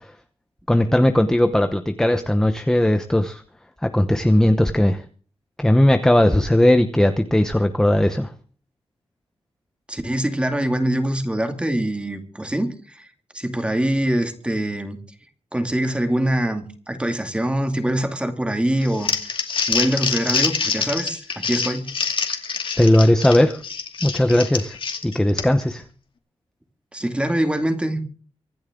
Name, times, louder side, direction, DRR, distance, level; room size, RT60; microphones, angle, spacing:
voice 1, 0.7-3.4 3.8-5.0 5.6-8.3 22.8-23.6 24.0-24.8 25.0-25.8, left 1 dB, 5° left, 0.9 m, -17 dB
voice 2, 9.9-13.1 13.3-15.0 15.5-19.1 19.7-21.9 26.9-28.1, right 1 dB, 10° right, 2.4 m, -24 dB
Crumpling crinkling, 18.8-25.7, left 5 dB, 55° left, 2.5 m, -25 dB
25.0 x 10.5 x 3.8 m
wide cardioid pair, 150°, 10 cm